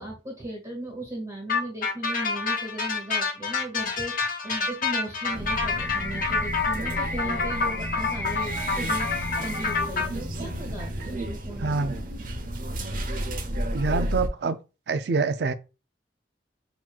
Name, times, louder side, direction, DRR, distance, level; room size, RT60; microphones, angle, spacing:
voice 1, 0.0-11.8 12.1-12.3, right 1 dB, 20° right, 1.8 m, -37 dB
sound 1, 1.5-10.1, left 4 dB, 50° left, 0.9 m, -28 dB
sound 2, 5.3-14.3, equal, 50° right, 0.9 m, -32 dB
sound 3, 5.8-9.8, left 1 dB, 10° left, 0.4 m, -35 dB
voice 2, 11.6-11.9 13.7-14.6 14.9-15.5, right 4 dB, 65° right, 0.5 m, -25 dB
7.4 x 3.0 x 2.3 m
head